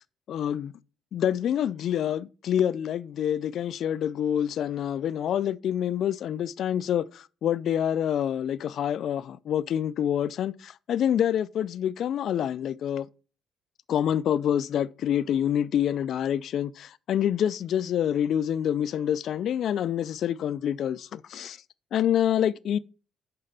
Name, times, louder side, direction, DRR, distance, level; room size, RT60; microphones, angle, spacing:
voice 1, 0.3-0.7 1.1-13.1 13.9-21.6 21.9-22.8, left 10 dB, 70° left, 0.4 m, -27 dB
6.7 x 4.9 x 5.7 m
cardioid pair, 90°, 0 cm